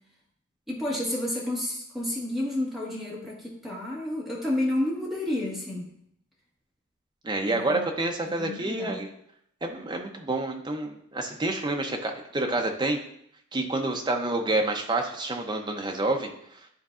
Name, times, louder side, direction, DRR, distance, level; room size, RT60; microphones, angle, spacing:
voice 1, 0.7-5.9 7.4-7.8 8.4-9.0, left 1 dB, ahead, -5 dB, 1.5 m, -30 dB
voice 2, 7.2-9.1 9.6-13.0 13.5-16.3, right 2 dB, 20° right, 3 dB, 0.6 m, -28 dB
10.5 x 3.8 x 2.5 m, 0.71 s
head